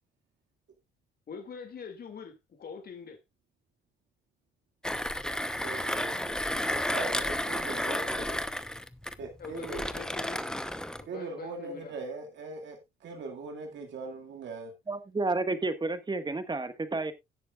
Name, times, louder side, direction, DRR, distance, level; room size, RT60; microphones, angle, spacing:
voice 1, 1.3-3.2 7.8-8.4 9.4-10.4 10.9-11.9, left 5 dB, 50° left, 2.5 m, -44 dB
Mechanisms, 4.8-11.1, left 1 dB, 5° left, 0.9 m, -32 dB
voice 2, 5.3-6.4 6.7-8.3 9.2-9.8 11.0-12.8 13.0-14.7, right 3 dB, 70° right, 2.2 m, -41 dB
voice 3, 14.9-17.1, right 3 dB, 20° right, 1.6 m, -31 dB
17.5 x 6.8 x 2.4 m
cardioid pair, 90°, 20 cm